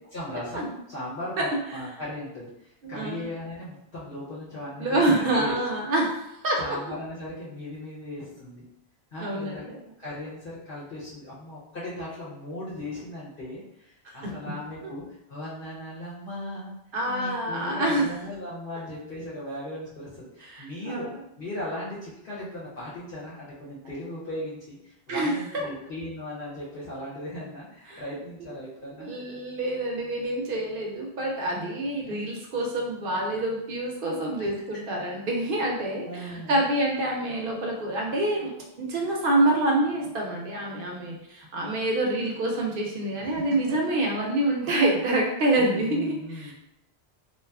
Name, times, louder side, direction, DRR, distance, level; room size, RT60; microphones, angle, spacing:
voice 1, 0.1-5.5 6.6-8.6 9.1-9.6 10.0-16.7 17.1-21.1 21.4-29.1 32.0-32.2 34.4-34.5 36.0-36.6 43.2-43.4 45.6-46.5, left 1 dB, 60° left, -8 dB, 0.9 m, -37 dB
voice 2, 1.4-1.8 2.8-3.3 4.8-6.8 9.2-9.8 14.2-14.5 16.9-18.1 20.4-21.2 25.1-25.7 27.9-28.0 28.4-28.5 29.0-46.5, right 1 dB, 65° right, -1 dB, 0.7 m, -27 dB
2.7 x 2.3 x 2.2 m, 0.83 s
omnidirectional pair, 1.1 m